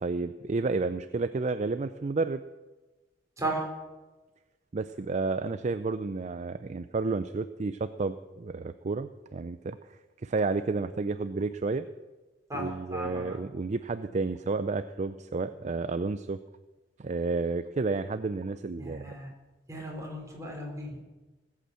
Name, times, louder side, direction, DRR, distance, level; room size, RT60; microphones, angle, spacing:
voice 1, 0.0-2.4 4.7-9.8 10.2-11.8 12.5-16.4 17.0-19.1, right 3 dB, 40° right, 12 dB, 0.4 m, -31 dB
voice 2, 3.4-3.7 12.5-13.4 18.8-19.3 19.7-21.0, right 1 dB, 20° right, 0 dB, 4.2 m, -35 dB
18.5 x 8.3 x 7.6 m, 1.2 s
head